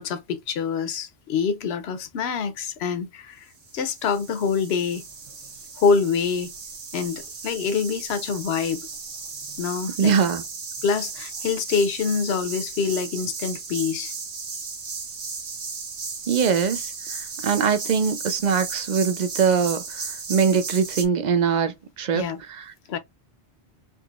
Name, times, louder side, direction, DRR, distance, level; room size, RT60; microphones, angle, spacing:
voice 1, 0.0-3.4 3.7-5.0 5.8-6.5 6.9-8.8 9.6-10.1 10.8-14.2 22.1-22.4 22.9-23.0, left 5 dB, 70° left, 0.9 m, -25 dB
sound 1, 3.6-21.1, right 5 dB, 85° right, 1.4 m, -35 dB
voice 2, 10.0-10.4 16.3-22.2 22.5-22.7, right 6 dB, 50° right, 0.6 m, -22 dB
3.8 x 2.9 x 2.3 m
omnidirectional pair, 1.2 m